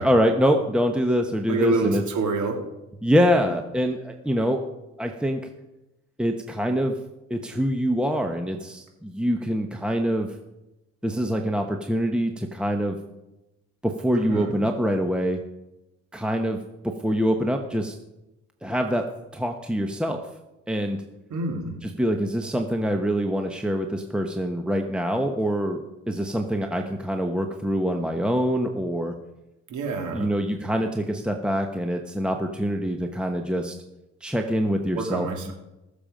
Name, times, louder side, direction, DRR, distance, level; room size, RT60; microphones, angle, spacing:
voice 1, 0.0-2.0 3.0-4.6 5.0-5.4 6.2-7.0 7.3-10.3 11.0-13.0 13.8-15.4 16.1-16.6 16.8-17.9 18.6-19.0 19.3-20.2 20.7-21.0 21.8-25.8 26.1-29.1 30.1-33.7 34.2-35.5, equal, 5° right, 4 dB, 1.1 m, -25 dB
voice 2, 1.5-2.6 14.1-14.6 21.3-21.8 29.7-30.3 34.9-35.5, right 3 dB, 75° right, 3 dB, 2.9 m, -27 dB
20.5 x 7.0 x 5.1 m, 0.96 s
cardioid pair, 90°, 30 cm